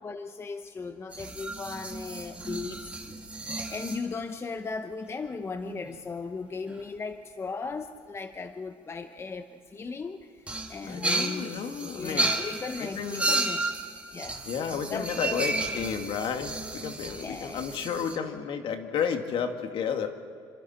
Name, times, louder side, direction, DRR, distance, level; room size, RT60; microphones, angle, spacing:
voice 1, 0.0-13.6 14.1-14.4 14.9-15.7 17.2-17.8, left 4 dB, 25° left, 8 dB, 1.0 m, -37 dB
sound 1, 1.1-4.0 5.3-5.4 5.6-5.9 6.7-6.8 10.5-18.2, right 2 dB, 10° right, 2.2 m, -33 dB
voice 2, 10.9-12.3 12.8-13.4 14.5-20.1, left 7 dB, 60° left, 5 dB, 2.2 m, -32 dB
28.5 x 25.5 x 4.4 m, 2.4 s
cardioid pair, 115°, 10 cm